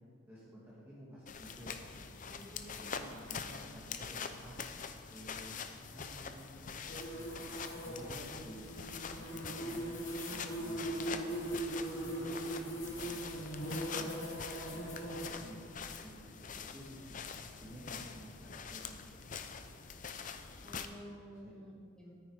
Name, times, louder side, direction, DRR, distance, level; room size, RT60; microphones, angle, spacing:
voice 1, 0.3-4.6 5.1-5.5 5.9-9.8 10.3-14.2 14.7-14.9 15.2-19.5 21.3-21.7, equal, 10° right, -8 dB, 1.9 m, -53 dB
sound 1, 1.3-20.9, left 6 dB, 40° left, 0.6 m, -45 dB
voice 2, 2.3-3.4 20.6-22.2, equal, 5° left, -7 dB, 2.9 m, -52 dB
sound 2, 6.9-15.3, right 1 dB, 70° left, 3.0 m, -40 dB
13.5 x 9.1 x 4.8 m, 2.1 s
head